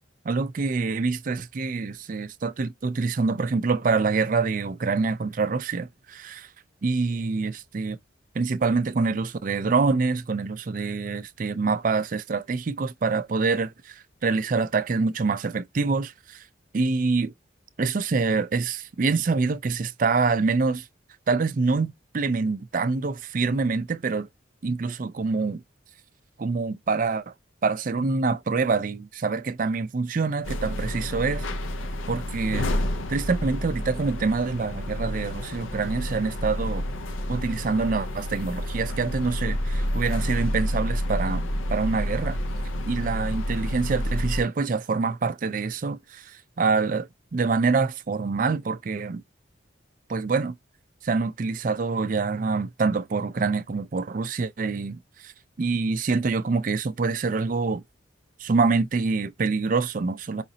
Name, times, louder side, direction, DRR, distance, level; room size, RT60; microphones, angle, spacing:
voice 1, 0.3-6.5 6.8-8.0 8.3-16.5 16.7-17.3 17.8-20.9 21.3-24.3 24.6-25.6 26.4-27.3 27.6-31.5 32.1-32.7 33.1-36.8 37.3-42.4 42.9-49.2 50.1-50.5 51.0-55.3 55.6-57.8 58.4-60.4, right 4 dB, 40° right, 0.4 m, -26 dB
sound 1, 30.4-44.4, equal, 85° left, 0.7 m, -29 dB
4.9 x 2.5 x 2.7 m
head